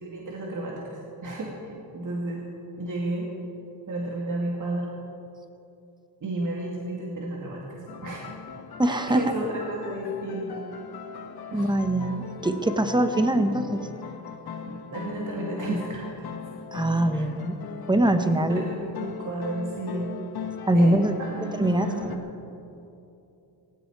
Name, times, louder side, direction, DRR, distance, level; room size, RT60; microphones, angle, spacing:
voice 1, 0.0-2.4 2.8-3.3 3.9-4.9 6.2-8.3 8.9-10.6 11.5-11.7 14.6-16.1 17.1-17.3 18.2-20.1 20.7-22.2, right 2 dB, 45° right, -3 dB, 2.4 m, -32 dB
sound 1, 7.9-22.2, left 6 dB, 60° left, 1.3 m, -39 dB
voice 2, 8.8-9.4 11.5-13.9 16.7-17.6 17.9-18.6 20.7-21.2 21.6-22.2, right 1 dB, 10° right, 8 dB, 1.1 m, -23 dB
17.5 x 16.5 x 4.7 m, 2.8 s
cardioid pair, 95°, 42 cm